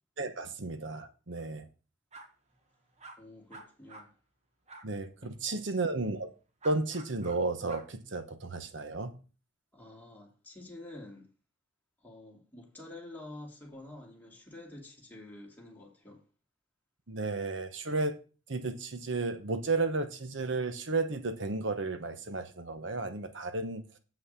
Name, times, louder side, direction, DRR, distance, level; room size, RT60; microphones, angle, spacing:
voice 1, 0.2-1.7 4.8-6.3 6.6-9.1 17.1-18.2 18.5-23.8, right 3 dB, 70° right, 1.0 m, -33 dB
sound 1, 2.1-2.3 3.0-3.2 3.5-4.1 4.7-4.8 6.6-7.4 7.7-7.9, right 3 dB, 35° right, 1.4 m, -48 dB
voice 2, 3.2-4.1 5.2-5.8 9.7-11.3 12.0-16.2, left 2 dB, 10° left, 2.6 m, -49 dB
8.1 x 5.7 x 6.6 m
head